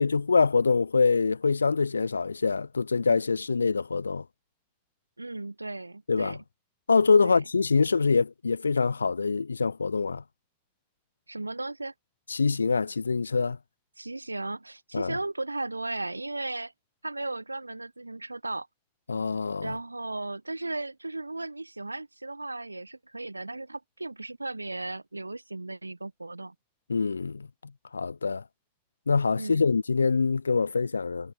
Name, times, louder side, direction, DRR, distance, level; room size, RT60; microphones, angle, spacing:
voice 1, 0.0-4.2 6.1-6.4 6.9-10.2 12.3-13.6 14.9-15.2 19.1-19.7 26.9-28.4 29.1-31.3, left 4 dB, 75° left, 0.3 m, -25 dB
voice 2, 5.2-6.4 7.2-7.4 11.3-11.9 14.0-16.7 17.0-18.7 19.6-26.5 29.4-29.6, right 2 dB, 85° right, 1.3 m, -36 dB
figure-of-eight pair, 90°, 0 cm